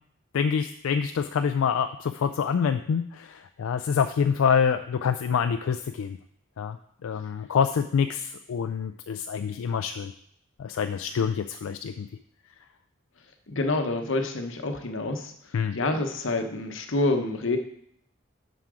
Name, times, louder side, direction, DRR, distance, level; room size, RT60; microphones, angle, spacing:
voice 1, 0.3-6.2 6.6-6.8 7.0-10.1 10.6-12.1 15.5-15.8, left 6 dB, 85° left, 8 dB, 0.3 m, -26 dB
voice 2, 13.5-15.3 15.7-17.6, left 2 dB, 65° left, 6 dB, 0.9 m, -27 dB
7.5 x 5.9 x 4.8 m, 0.70 s
head